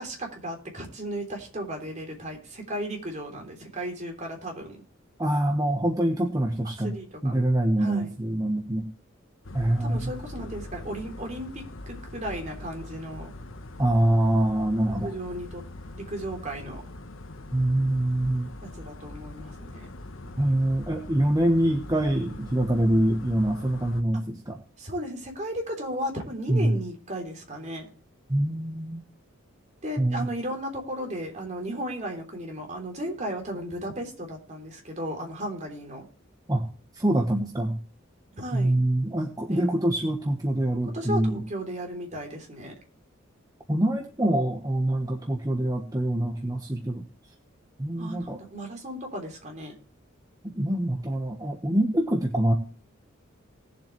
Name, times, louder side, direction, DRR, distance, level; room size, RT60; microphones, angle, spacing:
voice 1, 0.0-4.8 6.8-7.4 7.8-8.1 9.8-13.3 15.0-15.6 15.9-16.8 18.6-19.9 24.1-24.2 24.8-27.9 29.8-36.1 38.3-38.8 39.5-39.7 40.9-42.7 48.0-49.8, right 1 dB, 35° right, 2 dB, 3.4 m, -35 dB
voice 2, 5.2-6.9 7.2-8.9 9.5-10.1 13.8-15.1 17.5-18.5 20.4-24.6 26.5-26.7 28.3-29.0 30.0-30.2 36.5-36.7 36.9-37.8 38.5-41.4 43.7-47.0 47.8-48.4 50.4-52.5, right 1 dB, 20° right, 2 dB, 1.2 m, -25 dB
sound 1, 9.4-24.0, left 2 dB, 75° left, 1.2 m, -42 dB
19.5 x 7.5 x 3.2 m, 0.41 s
head